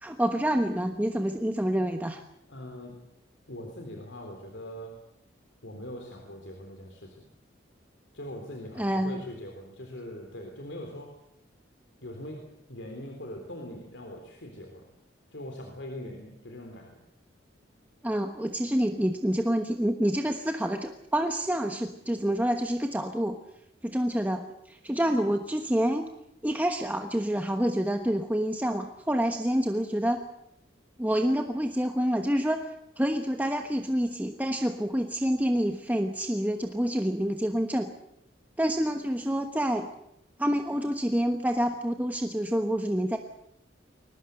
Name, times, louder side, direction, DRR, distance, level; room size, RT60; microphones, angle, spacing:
voice 1, 0.0-2.2 8.8-9.2 18.0-23.4 23.8-26.1 26.4-30.2 31.0-37.9 38.6-39.9 40.4-43.2, equal, 10° right, 5 dB, 1.2 m, -27 dB
voice 2, 2.5-3.1 3.5-5.0 5.6-7.2 8.1-11.1 12.0-14.8 15.3-17.0, left 1 dB, 90° left, 3 dB, 3.7 m, -41 dB
22.0 x 20.0 x 7.8 m, 0.78 s
head